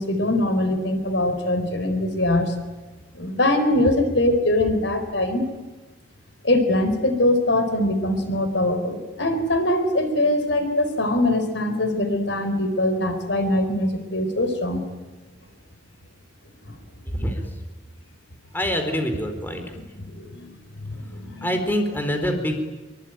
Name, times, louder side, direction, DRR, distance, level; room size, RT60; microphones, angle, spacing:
voice 1, 0.0-2.5 3.1-5.4 6.4-14.8 16.7-16.8 19.7-20.5 20.8-21.5, left 1 dB, 80° left, 8 dB, 4.6 m, -22 dB
voice 2, 17.1-17.4 18.5-19.6 21.4-22.6, equal, 10° left, 5 dB, 4.3 m, -25 dB
26.0 x 24.0 x 9.2 m, 1.2 s
head